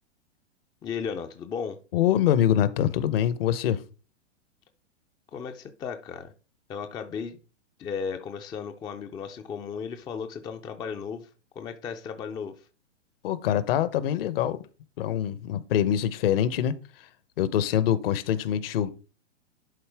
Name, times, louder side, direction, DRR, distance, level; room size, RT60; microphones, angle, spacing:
voice 1, 0.8-1.8 5.3-6.3 6.7-7.4 7.8-11.3 11.6-12.7, left 6 dB, 10° left, 0.4 m, -35 dB
voice 2, 1.9-3.8 13.2-14.6 15.0-16.7 17.4-18.9, left 10 dB, 50° left, 0.8 m, -24 dB
11.0 x 4.3 x 3.4 m
hypercardioid pair, 110°, 36 cm